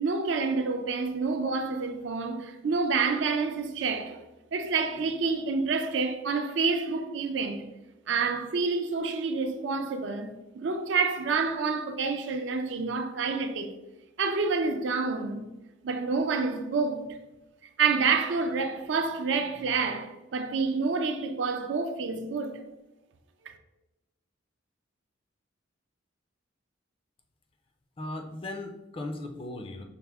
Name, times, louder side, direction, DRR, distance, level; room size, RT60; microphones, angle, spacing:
voice 1, 0.0-4.2 4.5-7.6 8.1-13.7 14.2-15.5 15.8-17.1 17.8-22.6 23.5-23.6, right 4 dB, 65° right, 0.4 m, -28 dB
voice 2, 28.0-29.8, left 2 dB, 30° left, 0.4 m, -37 dB
5.6 x 2.1 x 3.4 m
head